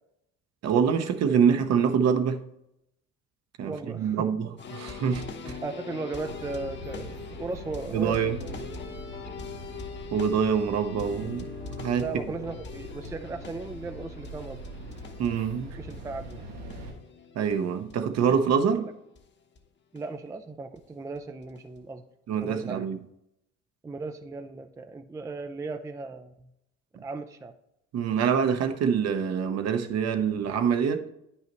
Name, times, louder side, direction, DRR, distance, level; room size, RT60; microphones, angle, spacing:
voice 1, 0.6-2.4 3.6-5.6 7.9-8.4 10.1-11.5 11.8-12.1 15.2-15.8 17.3-18.9 22.3-23.0 27.9-31.0, right 7 dB, 55° right, 0.8 m, -25 dB
voice 2, 3.6-4.3 5.6-8.8 12.0-14.6 15.8-16.4 18.7-18.8 19.9-22.0 22.4-22.9 23.8-26.5 27.0-27.5, right 3 dB, 10° right, 0.4 m, -37 dB
sound 1, 4.6-19.2 19.6-19.7 20.0-20.1 20.8-20.9 21.2-21.8 22.4-22.5, left 5 dB, 35° left, 1.0 m, -42 dB
sound 2, 6.2-16.9, equal, 80° right, 1.7 m, -43 dB
9.2 x 5.6 x 3.0 m
supercardioid pair, 85°, 32 cm